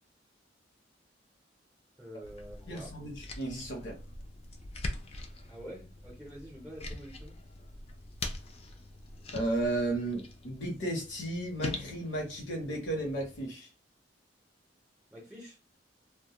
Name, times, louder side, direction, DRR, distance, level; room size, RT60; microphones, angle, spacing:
voice 1, 2.0-2.9 5.5-7.4 15.1-15.6, equal, 5° right, 0.6 m, -47 dB
sound 1, 2.2-13.5, left 2 dB, 35° left, 0.4 m, -43 dB
voice 2, 2.7-4.0 9.3-13.7, right 2 dB, 90° left, 0.8 m, -34 dB
2.2 x 2.1 x 2.8 m
head